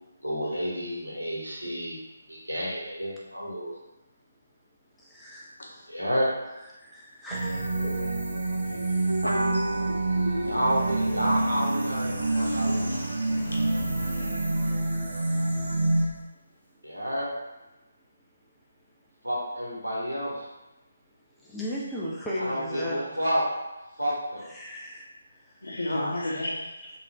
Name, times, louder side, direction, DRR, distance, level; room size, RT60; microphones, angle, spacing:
voice 1, 0.2-2.0 2.3-3.7 5.9-6.3 10.5-13.0 16.8-17.3 19.2-20.3 22.4-23.4 24.0-24.5, equal, 80° right, -5 dB, 1.1 m, -30 dB
voice 2, 5.0-5.9 6.8-8.0 21.4-23.3 24.4-25.0 25.4-25.6 26.8-26.9, left 1 dB, 5° left, -7 dB, 0.3 m, -36 dB
sound 1, 7.3-16.1, right 2 dB, 50° right, 0.6 m, -27 dB
voice 3, 8.7-9.6 10.2-10.6 12.9-13.0 13.5-13.6 25.6-26.7, left 1 dB, 60° left, -2 dB, 0.7 m, -32 dB
sound 2, 9.2-14.1, right 1 dB, 90° left, 0.3 m, -36 dB
sound 3, 12.1-15.3 15.6-15.7 16.1-16.2, left 1 dB, 30° left, 0.8 m, -46 dB
2.6 x 2.1 x 3.5 m, 1.0 s
figure-of-eight pair, 150°, 0 cm